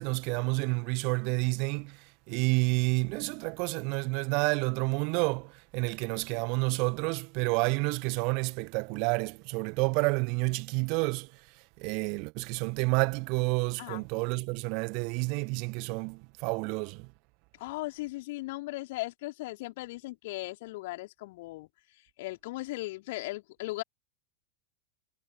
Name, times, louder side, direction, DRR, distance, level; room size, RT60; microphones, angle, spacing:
voice 1, 0.0-2.0 2.3-11.3 11.8-17.1, right 33 dB, 45° right, 1.7 m, -29 dB
voice 2, 17.5-21.7 22.2-23.8, left 20 dB, 50° left, 3.6 m, -37 dB
figure-of-eight pair, 90°, 0 cm